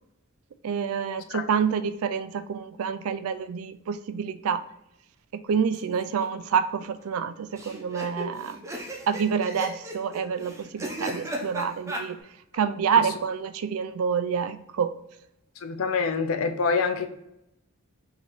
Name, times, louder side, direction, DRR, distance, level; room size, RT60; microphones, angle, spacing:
voice 1, 0.6-4.6 5.5-8.6 9.1-12.2 12.5-14.9, right 7 dB, 75° right, 11 dB, 0.4 m, -27 dB
sound 1, 5.7-6.2 6.5-6.6 6.8-6.9 7.6-12.0, right 1 dB, 15° right, 0.6 m, -35 dB
voice 2, 15.6-17.1, left 5 dB, 70° left, 7 dB, 0.5 m, -25 dB
5.4 x 3.0 x 3.0 m, 0.84 s
head